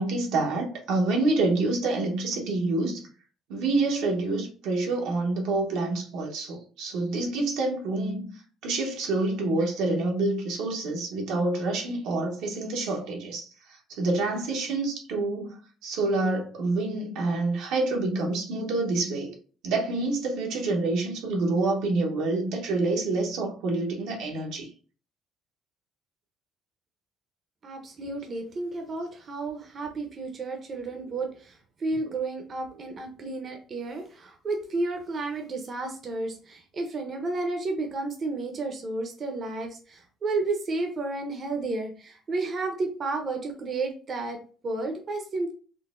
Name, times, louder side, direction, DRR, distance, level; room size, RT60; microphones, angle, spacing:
voice 1, 0.0-3.1 3.5-8.3 8.6-13.5 13.9-19.3 19.6-24.7, right 2 dB, 85° right, 0.8 m, -27 dB
voice 2, 27.6-44.4 44.6-45.5, right 3 dB, 45° right, 0.6 m, -32 dB
3.7 x 2.0 x 2.4 m
cardioid pair, 90°, 0 cm